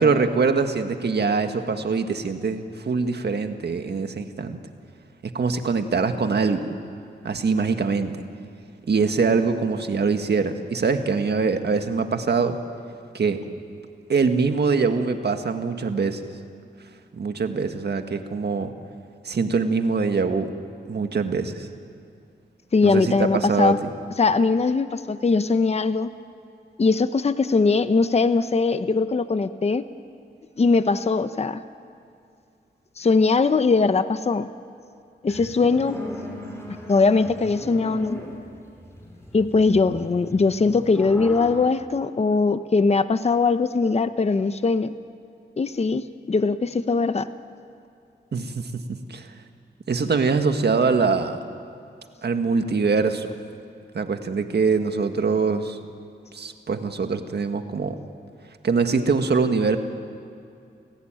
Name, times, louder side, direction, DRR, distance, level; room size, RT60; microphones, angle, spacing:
voice 1, 0.0-4.6 5.3-6.8 7.2-8.1 8.9-12.6 13.1-13.4 14.1-16.2 17.1-18.7 19.2-20.5 20.9-21.7 22.8-23.9 48.3-49.3 49.9-51.4 52.2-53.3 53.9-55.8 56.3-58.0 58.6-59.8, right 4 dB, 65° right, 6 dB, 1.8 m, -23 dB
voice 2, 22.7-23.8 24.2-26.1 26.8-29.9 30.6-31.6 33.0-34.5 35.2-36.0 36.9-38.2 39.3-44.9 45.6-47.3, left 4 dB, 35° left, 11 dB, 0.8 m, -21 dB
sound 1, 35.3-41.7, left 1 dB, 15° left, 5.3 m, -38 dB
29.0 x 17.0 x 9.1 m, 2.5 s
wide cardioid pair, 95°, 19 cm